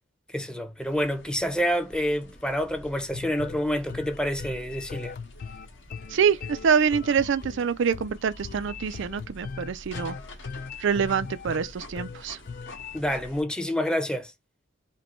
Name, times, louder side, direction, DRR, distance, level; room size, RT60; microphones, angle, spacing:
voice 1, 0.3-5.2 12.9-14.3, equal, 5° left, 0.7 m, -28 dB
sound 1, 0.8-13.4, left 1 dB, 70° left, 1.9 m, -47 dB
sound 2, 3.1-13.0, left 5 dB, 45° left, 0.4 m, -40 dB
voice 2, 6.1-10.1 10.8-12.4, right 6 dB, 65° right, 0.4 m, -25 dB
5.2 x 2.2 x 4.2 m
head